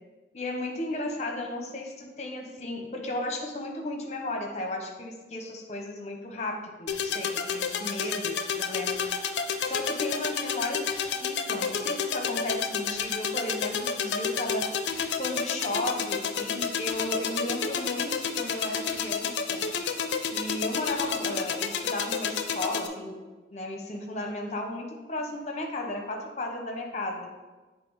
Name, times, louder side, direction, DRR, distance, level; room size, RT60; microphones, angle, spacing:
voice 1, 0.3-9.0 9.6-14.7 15.2-19.7 20.3-23.2 23.5-27.3, left 1 dB, 40° left, 2 dB, 0.8 m, -34 dB
sound 1, 6.9-22.9, left 6 dB, 85° left, 0.5 m, -30 dB
7.6 x 3.3 x 4.7 m, 1.3 s
head